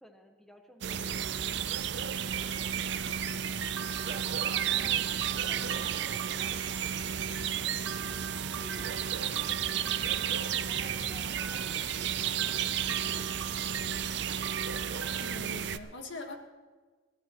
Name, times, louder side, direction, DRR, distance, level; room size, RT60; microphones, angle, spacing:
voice 1, 0.0-2.9 4.1-5.0 5.5-14.1, equal, ahead, 3 dB, 1.3 m, -56 dB
sound 1, 0.8-15.8, right 8 dB, 60° right, 0.5 m, -32 dB
sound 2, 2.2-15.4, right 8 dB, 85° right, 0.9 m, -42 dB
voice 2, 4.4-5.0 15.2-16.4, left 2 dB, 70° left, 4 dB, 1.6 m, -43 dB
22.0 x 15.5 x 3.1 m, 1.4 s
head